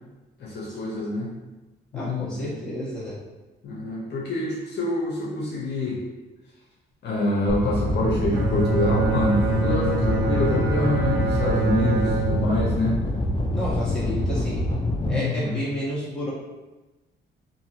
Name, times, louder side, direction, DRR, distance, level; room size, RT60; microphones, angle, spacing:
voice 1, 0.4-1.3 1.9-2.5 3.6-6.0 7.0-13.0 15.0-15.7, left 2 dB, 60° left, -5 dB, 0.8 m, -26 dB
voice 2, 1.9-3.2 13.5-14.6 15.1-16.3, equal, 5° left, -10 dB, 1.4 m, -31 dB
sound 1, 7.5-15.1, left 1 dB, 25° left, 0.4 m, -26 dB
Bowed string instrument, 8.3-13.8, right 5 dB, 85° right, 0.7 m, -27 dB
2.7 x 2.7 x 2.8 m, 1.1 s
cardioid pair, 90°, 20 cm